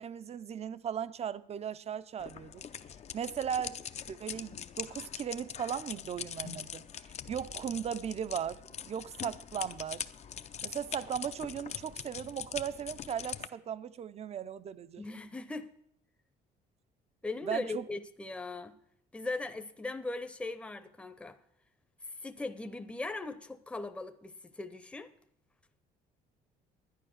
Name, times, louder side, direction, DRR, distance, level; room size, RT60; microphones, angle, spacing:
voice 1, 0.0-2.6 3.1-3.8 4.0-10.1 10.6-15.0 17.4-17.9, right 8 dB, 40° right, 0.6 m, -37 dB
sound 1, 2.2-13.5, left 8 dB, 40° left, 0.6 m, -43 dB
voice 2, 15.0-15.7 17.2-18.8 19.1-21.4 22.1-25.1, left 3 dB, 5° left, 0.7 m, -39 dB
11.0 x 9.8 x 6.5 m
cardioid pair, 110°, 17 cm